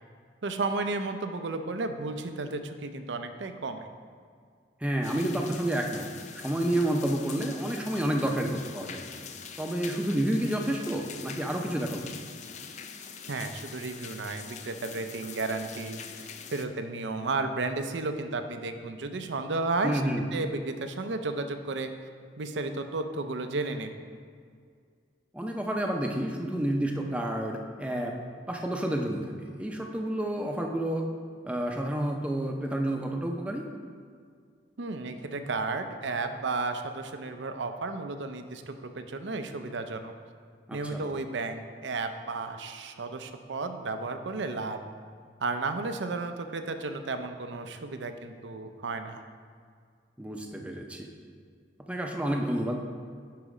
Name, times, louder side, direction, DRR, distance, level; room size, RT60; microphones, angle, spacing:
voice 1, 0.4-3.9 13.3-20.0 20.3-21.9 22.4-24.0 34.8-40.1 40.7-44.8 45.4-49.2, right 3 dB, 80° right, 8 dB, 0.6 m, -33 dB
voice 2, 4.8-6.0 6.3-9.0 9.6-12.2 19.8-20.3 25.3-28.2 28.5-31.1 31.4-33.7 40.7-41.0 50.2-51.1 51.9-52.8, right 1 dB, 5° right, 1 dB, 0.6 m, -30 dB
sound 1, 5.0-16.7, left 6 dB, 40° left, 0.4 m, -44 dB
10.5 x 4.2 x 4.9 m, 2.1 s
head